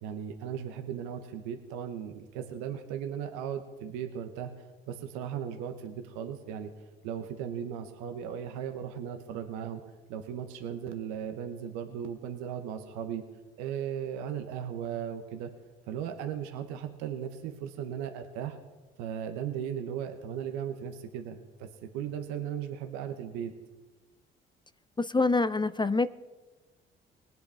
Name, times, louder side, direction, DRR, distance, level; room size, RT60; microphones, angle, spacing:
voice 1, 0.0-6.7 7.0-9.8 10.1-13.2 13.6-15.5 15.9-18.6 19.0-23.5, right 9 dB, 75° right, 6 dB, 1.1 m, -37 dB
voice 2, 25.0-26.1, left 3 dB, 15° left, 15 dB, 0.6 m, -26 dB
21.5 x 8.2 x 3.5 m, 1.3 s
hypercardioid pair, 45°, 30 cm